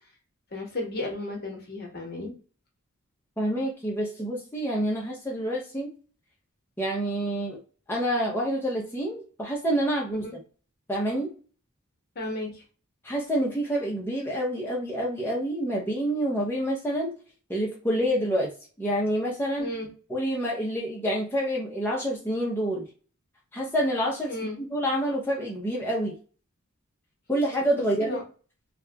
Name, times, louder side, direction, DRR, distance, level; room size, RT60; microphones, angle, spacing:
voice 1, 0.5-2.3 10.2-10.3 12.1-12.6 19.6-19.9 24.3-24.6 27.7-28.2, left 2 dB, 45° left, 1 dB, 1.0 m, -34 dB
voice 2, 3.4-5.9 6.8-7.6 7.9-10.3 10.9-11.3 13.0-17.1 17.5-18.5 18.8-19.7 20.1-22.8 23.5-24.3 24.7-26.2 27.3-28.2, equal, 10° left, -3 dB, 0.7 m, -27 dB
2.8 x 2.4 x 3.3 m, 0.37 s
head